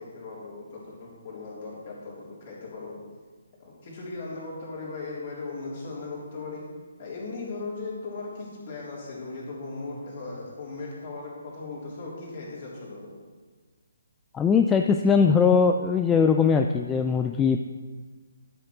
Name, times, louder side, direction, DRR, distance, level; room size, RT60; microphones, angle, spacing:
voice 1, 0.0-3.0 3.6-6.6 7.0-13.1, left 3 dB, 40° left, -5 dB, 3.5 m, -38 dB
voice 2, 14.3-17.6, left 6 dB, 10° left, 5 dB, 0.3 m, -20 dB
11.5 x 6.5 x 4.7 m, 1.4 s
figure-of-eight pair, 140°, 0 cm